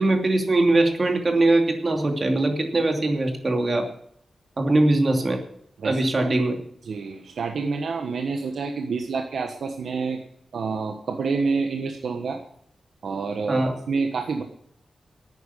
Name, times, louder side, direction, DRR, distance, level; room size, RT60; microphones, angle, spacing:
voice 1, 0.0-3.9 4.6-5.4 5.8-6.6 13.5-13.7, right 2 dB, 40° right, 4 dB, 2.7 m, -21 dB
voice 2, 5.8-6.4 6.8-10.2 10.5-12.4 13.0-14.4, right 4 dB, 75° right, 4 dB, 1.4 m, -28 dB
11.5 x 9.3 x 8.4 m, 0.68 s
wide cardioid pair, 90°, 0 cm